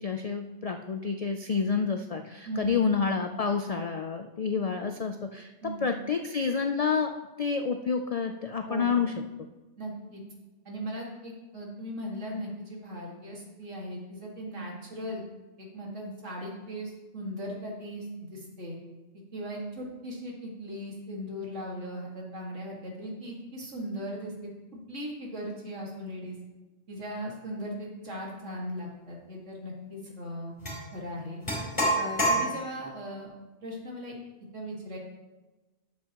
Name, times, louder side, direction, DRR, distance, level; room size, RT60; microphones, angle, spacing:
voice 1, 0.0-7.1 7.4-9.1, left 5 dB, 65° left, 5 dB, 0.3 m, -29 dB
voice 2, 2.5-2.9 5.6-5.9 8.6-9.0 9.8-10.2 10.7-15.3 15.6-18.8 19.3-26.4 26.9-30.6 30.9-31.4 32.0-33.3 33.6-34.2 34.5-35.0, equal, 85° right, -2 dB, 2.3 m, -38 dB
sound 1, 30.6-30.8 31.5-32.9, right 1 dB, 25° left, 3.3 m, -27 dB
11.5 x 7.4 x 2.9 m, 1.2 s
omnidirectional pair, 1.2 m